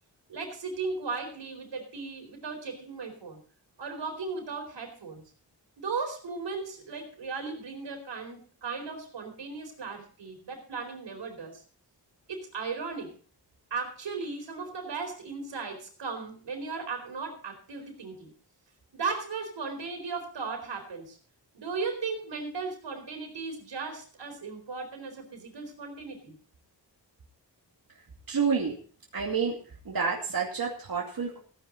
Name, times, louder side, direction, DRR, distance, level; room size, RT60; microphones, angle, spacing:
voice 1, 0.3-3.4 3.8-5.2 5.8-11.6 12.3-13.2 13.7-18.3 18.9-21.2 21.5-26.4, right 4 dB, 90° right, 3 dB, 4.3 m, -36 dB
voice 2, 28.3-28.8 29.1-29.6 29.8-31.4, right 6 dB, 55° right, -1 dB, 2.4 m, -29 dB
16.0 x 10.0 x 4.0 m, 0.42 s
wide cardioid pair, 100°, 41 cm